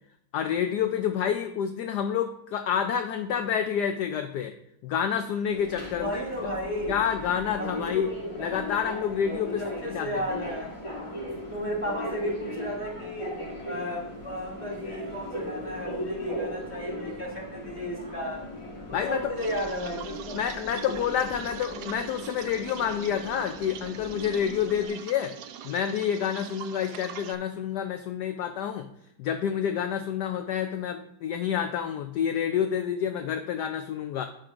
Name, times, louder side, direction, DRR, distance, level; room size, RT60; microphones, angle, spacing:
voice 1, 0.3-4.5 4.8-6.2 6.9-8.1 8.4-9.6 9.9-10.2 18.9-19.3 20.3-25.3 25.6-28.9 29.2-34.3, left 8 dB, 70° left, 6 dB, 1.0 m, -28 dB
Subway metro underground, 5.5-24.9, equal, 15° left, 1.4 m, -38 dB
voice 2, 5.9-7.0 7.7-8.1 9.4-10.7 11.5-13.3 13.6-18.4 18.9-20.4, equal, 5° right, -5 dB, 2.2 m, -34 dB
sound 1, 19.4-27.4, right 9 dB, 70° right, 1.1 m, -43 dB
12.5 x 6.2 x 2.5 m, 0.73 s
omnidirectional pair, 2.1 m